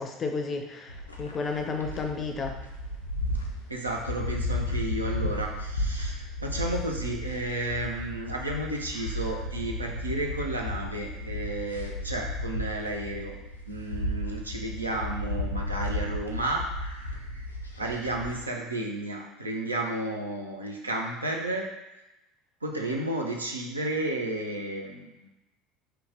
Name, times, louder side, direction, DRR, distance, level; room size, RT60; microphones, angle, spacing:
voice 1, 0.0-2.6, left 4 dB, 30° left, 4 dB, 0.5 m, -32 dB
sound 1, 0.9-18.4, left 1 dB, 90° left, 0.4 m, -34 dB
voice 2, 3.7-13.3 13.7-16.6 16.9-17.5 17.8-21.6 22.6-25.3, right 2 dB, 85° right, 0 dB, 0.4 m, -32 dB
3.0 x 2.2 x 3.7 m, 0.98 s
figure-of-eight pair, 70°, 0 cm